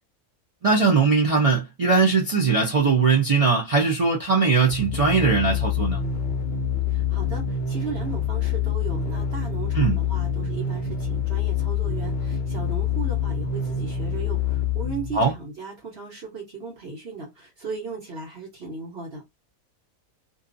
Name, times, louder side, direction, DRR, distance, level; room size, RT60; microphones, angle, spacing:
voice 1, 0.6-6.0 9.7-10.0 15.1-15.3, right 4 dB, 65° right, 0.3 m, -20 dB
sound 1, 4.7-15.4, left 7 dB, 80° left, 0.4 m, -26 dB
voice 2, 6.9-19.2, right 4 dB, 50° right, 1.1 m, -37 dB
2.6 x 2.3 x 2.5 m
omnidirectional pair, 1.5 m